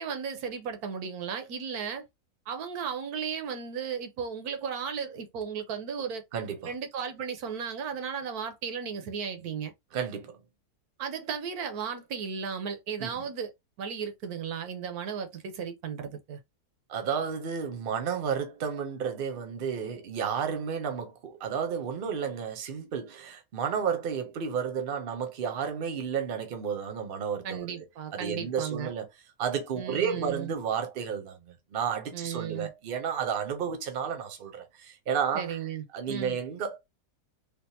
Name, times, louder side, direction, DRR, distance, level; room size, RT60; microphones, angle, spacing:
voice 1, 0.0-2.1 2.5-6.2 6.7-9.7 11.0-13.5 13.8-16.4 27.4-28.9 29.8-30.5 32.1-32.7 35.3-36.4, right 7 dB, 80° right, 1.2 m, -35 dB
voice 2, 6.3-6.7 9.9-10.4 13.0-13.2 16.9-27.8 28.1-29.1 29.4-35.6 35.9-36.8, right 7 dB, 45° right, 0.8 m, -32 dB
3.4 x 2.5 x 2.7 m
omnidirectional pair, 1.6 m